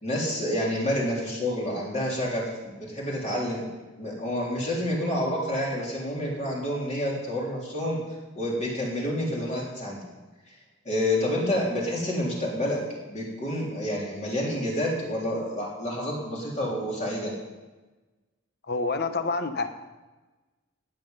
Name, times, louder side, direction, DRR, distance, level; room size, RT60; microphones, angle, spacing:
voice 1, 0.0-3.7 4.0-8.0 8.4-10.0 10.9-12.8 13.1-17.3, left 1 dB, 35° left, -4 dB, 3.6 m, -28 dB
voice 2, 18.7-19.7, left 3 dB, 50° left, 8 dB, 1.0 m, -27 dB
18.5 x 7.7 x 5.4 m, 1.2 s
head